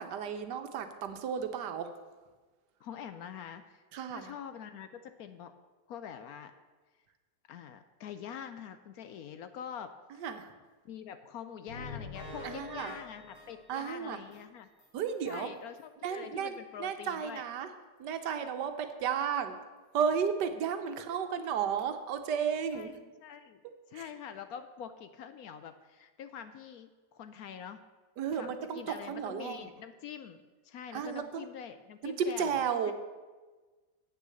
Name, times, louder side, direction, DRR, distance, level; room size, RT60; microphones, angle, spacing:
voice 1, 0.0-1.9 3.9-4.3 10.2-10.5 12.4-13.0 13.7-14.2 14.9-15.5 16.0-17.7 18.0-19.6 19.9-22.9 23.9-24.0 28.2-29.6 30.9-31.5 32.0-32.9, right 7 dB, 75° right, 8 dB, 1.4 m, -33 dB
voice 2, 2.8-3.8 4.1-5.5 5.9-6.5 7.5-10.2 10.8-14.7 15.2-17.4 21.0-21.1 22.7-23.6 23.9-27.8 28.3-32.6 32.8-32.9, left 8 dB, 70° left, 10 dB, 1.0 m, -45 dB
sound 1, 11.7-14.4 14.8-14.9 15.3-15.4 15.8-15.9, left 3 dB, 85° left, 3.4 m, -46 dB
8.4 x 6.5 x 7.6 m, 1.3 s
omnidirectional pair, 1.8 m